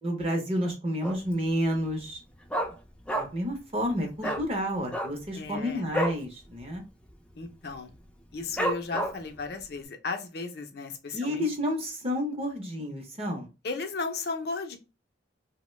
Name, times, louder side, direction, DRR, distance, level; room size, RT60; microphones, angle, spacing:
voice 1, 0.0-2.2 3.1-6.8 11.1-13.5, equal, 30° right, 2 dB, 0.7 m, -30 dB
Dog, 1.0-1.4 1.7-1.8 2.1-3.5 3.8-3.9 4.2-4.4 4.8-6.2 6.6-6.8 7.0-7.4 7.9-8.0 8.6-9.4 9.8-9.9, equal, 5° left, 0.4 m, -30 dB
voice 2, 5.3-5.8 7.4-7.9 8.3-11.4 13.6-14.8, left 4 dB, 55° left, 5 dB, 0.6 m, -35 dB
2.9 x 2.1 x 3.1 m, 0.28 s
head